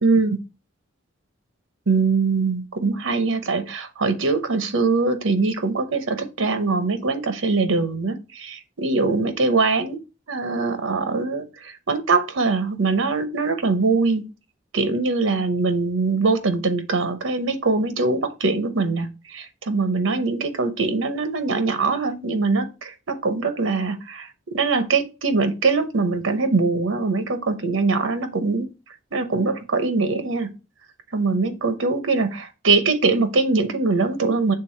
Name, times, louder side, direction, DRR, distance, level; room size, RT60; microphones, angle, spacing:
voice 1, 0.0-0.4 1.9-10.0 10.3-14.2 14.7-28.7 29.1-30.5 31.1-34.5, right 3 dB, 90° right, 0.9 m, -22 dB
6.8 x 3.5 x 4.4 m
head